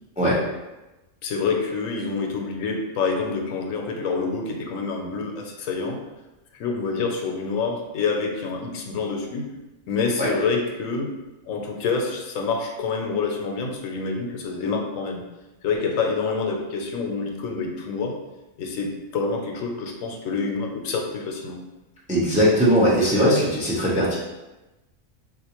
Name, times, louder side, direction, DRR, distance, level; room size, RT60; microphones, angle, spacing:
voice 1, 1.2-6.0 6.5-9.5 9.9-11.1 11.5-15.2 15.6-18.1 18.6-21.6, left 4 dB, 80° left, 2 dB, 1.0 m, -27 dB
voice 2, 22.1-24.2, equal, 10° right, -6 dB, 0.4 m, -19 dB
3.8 x 2.5 x 2.9 m, 1.0 s
omnidirectional pair, 1.4 m